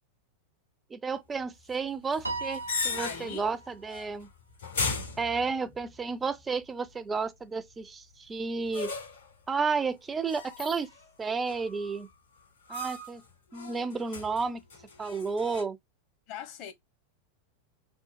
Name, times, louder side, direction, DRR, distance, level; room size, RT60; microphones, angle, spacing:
voice 1, 0.9-4.3 5.2-8.9 9.5-10.9 11.2-12.1 12.7-13.2 13.5-14.6 15.0-15.8, right 4 dB, 15° right, 0.4 m, -32 dB
sound 1, 2.1-3.5 3.8-4.2 4.6-5.9 8.7-9.3 10.2-11.1 11.4-12.1 12.7-13.2 13.5-15.6, left 4 dB, 65° left, 2.2 m, -37 dB
Piano, 2.2-3.8, right 3 dB, 85° right, 0.6 m, -37 dB
voice 2, 3.0-3.6 16.3-16.7, left 9 dB, 40° left, 0.9 m, -40 dB
3.7 x 2.4 x 2.4 m
figure-of-eight pair, 90°, 0 cm